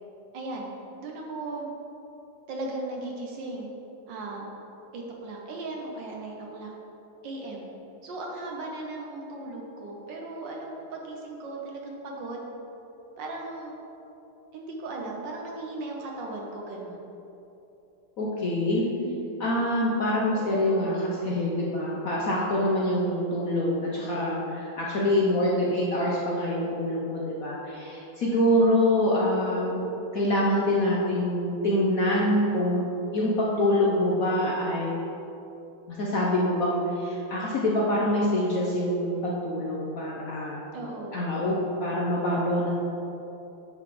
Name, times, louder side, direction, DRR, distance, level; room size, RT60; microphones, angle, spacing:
voice 1, 0.3-0.7 1.0-1.7 2.5-3.7 4.1-4.5 4.9-6.7 7.2-7.7 8.0-12.5 13.2-13.7 14.5-17.0 18.9-19.4 20.3-20.4 40.7-41.3, right 2 dB, 65° right, -1 dB, 1.5 m, -37 dB
voice 2, 18.2-18.8 19.4-29.7 30.1-35.0 35.9-40.6 41.1-41.5 41.8-42.7, left 1 dB, 60° left, -4 dB, 1.0 m, -25 dB
9.4 x 4.1 x 4.9 m, 2.9 s
omnidirectional pair, 2.3 m